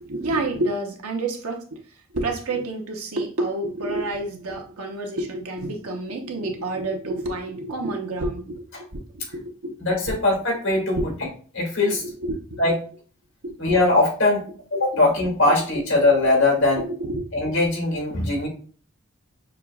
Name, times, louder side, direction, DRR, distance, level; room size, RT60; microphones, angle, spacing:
voice 1, 0.0-1.8 2.1-9.7 11.0-11.1 12.0-12.6 13.4-13.6 14.9-15.0 15.7-15.8 16.8-17.3, right 2 dB, 85° right, 2 dB, 1.0 m, -29 dB
voice 2, 9.8-11.0 11.5-12.0 12.6-12.7 13.6-14.4 14.7-16.8 17.3-18.5, left 2 dB, 60° left, -1 dB, 2.3 m, -20 dB
6.3 x 3.0 x 2.4 m, 0.42 s
head